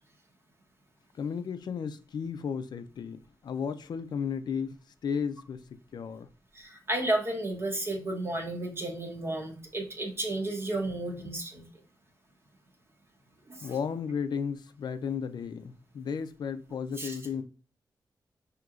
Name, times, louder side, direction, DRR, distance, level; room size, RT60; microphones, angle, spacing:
voice 1, 1.1-4.8 5.0-6.3 13.6-17.4, left 6 dB, 65° left, 0.4 m, -34 dB
voice 2, 6.5-11.7 13.5-13.7 17.0-17.1, right 1 dB, 30° right, 0.9 m, -32 dB
6.0 x 2.9 x 2.4 m
wide cardioid pair, 135°, 8 cm